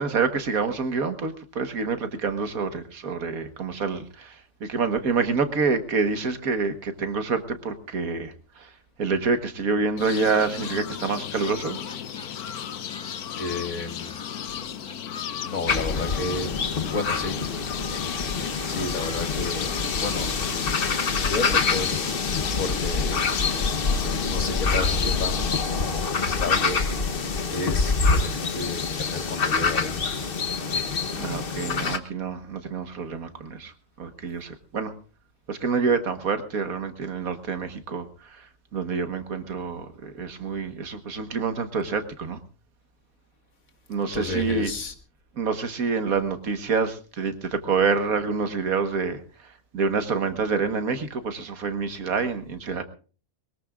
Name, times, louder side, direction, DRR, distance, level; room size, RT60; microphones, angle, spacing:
voice 1, 0.0-8.7 9.0-11.8 31.2-33.7 34.0-34.9 35.5-42.4 43.9-44.7 45.4-52.8, right 4 dB, 75° right, 1.9 m, -27 dB
sound 1, 10.0-25.6, left 9 dB, 90° left, 1.4 m, -35 dB
Laughter, 11.4-18.2 18.5-18.6 18.9-24.7, left 1 dB, 5° left, 2.2 m, -50 dB
voice 2, 13.3-14.1 15.4-16.6 16.9-17.4 18.7-19.7 20.0-20.3 21.2-23.3 24.3-25.7 26.1-26.8 27.5-30.0 44.1-44.9, left 3 dB, 70° left, 2.2 m, -32 dB
sound 2, 15.7-32.0, left 4 dB, 40° left, 1.2 m, -26 dB
22.0 x 20.5 x 2.5 m
omnidirectional pair, 1.5 m